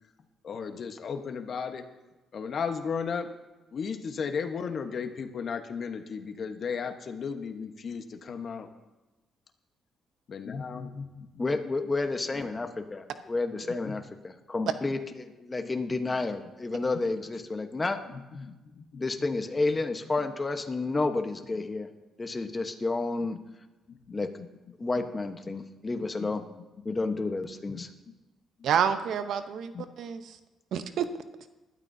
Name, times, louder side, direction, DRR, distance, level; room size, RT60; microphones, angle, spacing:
voice 1, 0.4-1.8 2.3-3.3 3.7-8.7 10.3-11.4 12.3-12.5 13.8-13.9 16.9-17.0 17.8-19.0 23.9-24.0 24.4-24.5 25.0-25.1 25.9-26.6 27.7-27.9 29.7-29.8, left 6 dB, 55° left, 6 dB, 1.2 m, -35 dB
voice 2, 11.4-18.0 19.0-21.9 22.2-23.4 24.1-24.4 24.8-26.4 26.8-27.9, left 3 dB, 25° left, 6 dB, 1.2 m, -30 dB
voice 3, 28.6-30.4 30.7-31.1, right 8 dB, 70° right, 10 dB, 0.9 m, -28 dB
20.0 x 12.5 x 2.8 m, 1.1 s
cardioid pair, 90°, 0 cm